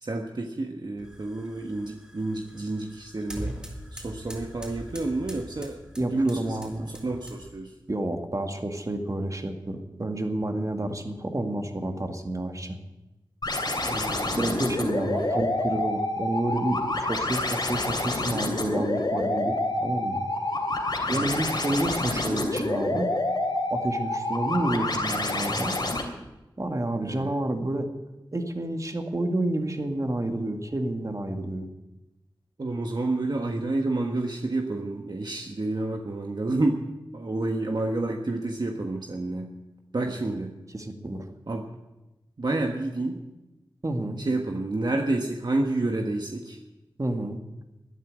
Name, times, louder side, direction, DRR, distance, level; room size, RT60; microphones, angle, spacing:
voice 1, 0.0-3.6 3.9-5.8 6.1-6.6 6.9-7.7 13.7-14.7 15.0-15.4 21.1-21.4 27.0-27.3 32.6-36.8 37.1-39.5 39.9-40.6 41.5-41.7 42.4-43.2 44.2-46.6, right 2 dB, 55° right, 2 dB, 1.4 m, -29 dB
sound 1, 1.0-7.7, equal, 10° right, 4.4 m, -42 dB
voice 2, 6.0-6.9 7.9-12.8 14.4-19.6 19.8-20.2 21.1-23.1 23.7-25.8 26.6-27.9 28.3-31.7 40.7-41.3 43.8-44.2 47.0-47.4, right 1 dB, 40° right, 5 dB, 1.9 m, -29 dB
sound 2, 13.4-26.0, left 2 dB, 60° left, 3.0 m, -28 dB
13.0 x 10.0 x 8.7 m, 1.0 s
cardioid pair, 45°, 9 cm